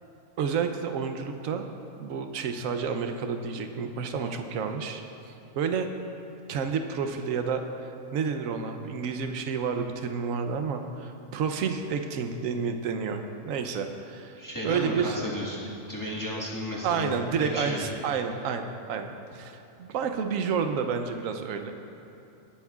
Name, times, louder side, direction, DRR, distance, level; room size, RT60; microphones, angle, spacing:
voice 1, 0.4-1.6 2.0-5.9 6.5-14.4 14.6-15.2 16.3-16.4 16.8-21.7, right 6 dB, 80° right, 6 dB, 1.1 m, -30 dB
voice 2, 14.4-17.8, left 1 dB, 15° left, -5 dB, 1.4 m, -33 dB
20.0 x 10.0 x 2.4 m, 3.0 s
omnidirectional pair, 1.4 m